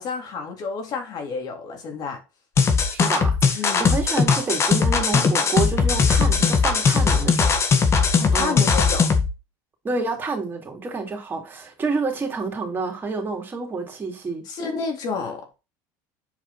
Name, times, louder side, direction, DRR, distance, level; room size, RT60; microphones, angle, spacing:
voice 1, 0.0-2.2 3.5-3.8 8.2-9.1 14.5-15.6, left 5 dB, 50° left, 3.3 m, -30 dB
sound 1, 2.6-9.3, left 5 dB, 35° left, 1.5 m, -19 dB
voice 2, 2.9-7.5 8.3-8.7 9.8-14.4, right 4 dB, 25° right, 3.3 m, -28 dB
7.7 x 4.9 x 4.2 m
supercardioid pair, 120°, 8 cm